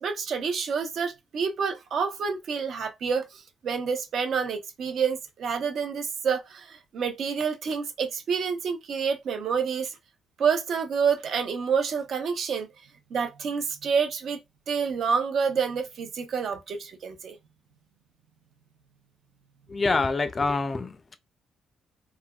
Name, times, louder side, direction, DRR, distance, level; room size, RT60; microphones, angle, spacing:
voice 1, 0.0-9.9 10.4-12.7 13.1-14.4 14.7-17.4, right 6 dB, 65° right, 0.7 m, -28 dB
voice 2, 19.7-21.2, left 3 dB, 30° left, 0.4 m, -26 dB
3.3 x 2.2 x 2.3 m
cardioid pair, 90°, 0 cm